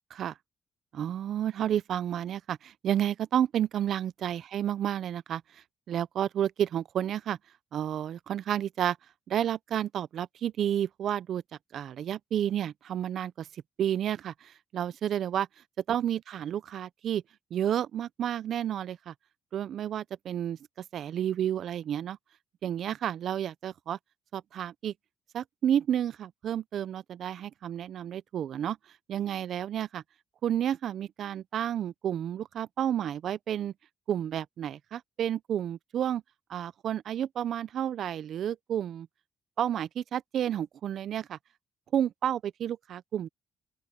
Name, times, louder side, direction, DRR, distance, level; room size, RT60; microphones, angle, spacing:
voice 1, 0.9-5.4 5.9-7.4 7.7-9.0 9.3-11.4 11.7-13.5 13.8-15.5 15.9-17.2 17.5-19.1 19.5-20.6 20.9-22.2 22.6-24.0 24.3-24.9 25.3-28.8 29.1-30.0 30.4-33.7 34.1-36.2 36.5-39.1 39.6-41.4 41.9-43.3, right 10 dB, 65° right, 0.5 m, -31 dB
open air
cardioid pair, 90°, 0 cm